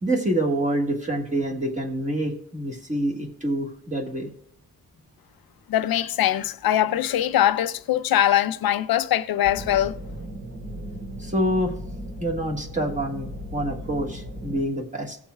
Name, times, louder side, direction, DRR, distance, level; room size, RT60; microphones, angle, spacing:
voice 1, 0.0-4.3 11.2-11.7 12.2-15.2, right 1 dB, 20° right, 1.6 m, -26 dB
voice 2, 5.7-10.0, left 12 dB, 85° left, 0.7 m, -22 dB
sound 1, 9.4-14.6, equal, 65° right, 3.4 m, -36 dB
17.5 x 7.2 x 2.3 m
wide cardioid pair, 135°, 35 cm